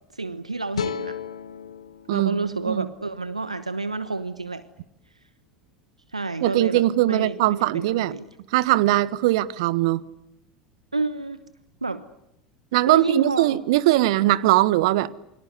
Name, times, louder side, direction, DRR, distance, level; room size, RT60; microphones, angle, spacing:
voice 1, 0.1-1.2 2.1-4.6 6.1-8.3 10.9-11.4 11.8-12.0 12.9-13.6, right 3 dB, 90° right, 1.0 m, -29 dB
sound 1, 0.7-3.9, left 7 dB, 75° left, 1.3 m, -36 dB
voice 2, 2.1-2.9 6.4-8.1 8.5-10.0 12.7-15.1, right 16 dB, 60° right, 1.3 m, -21 dB
28.5 x 24.0 x 8.1 m
figure-of-eight pair, 75°, 3 cm